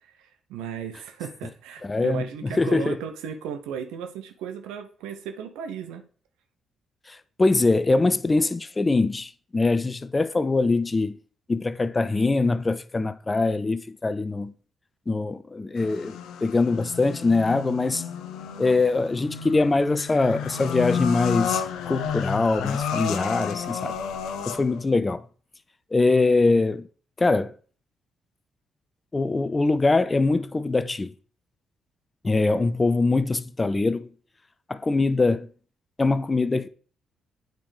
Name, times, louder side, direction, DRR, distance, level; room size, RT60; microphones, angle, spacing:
voice 1, 0.0-6.0, right 8 dB, 75° right, 0.6 m, -35 dB
voice 2, 1.8-3.0 7.1-11.2 11.5-14.5 15.1-18.0 18.6-24.0 24.5-25.3 25.9-26.9 27.2-27.5 29.1-31.1 32.2-34.1 34.7-35.5 36.0-36.7, left 3 dB, 30° left, 0.5 m, -23 dB
sound 1, 15.8-24.8, left 8 dB, 70° left, 0.6 m, -31 dB
9.0 x 5.2 x 3.3 m
hypercardioid pair, 40°, 0 cm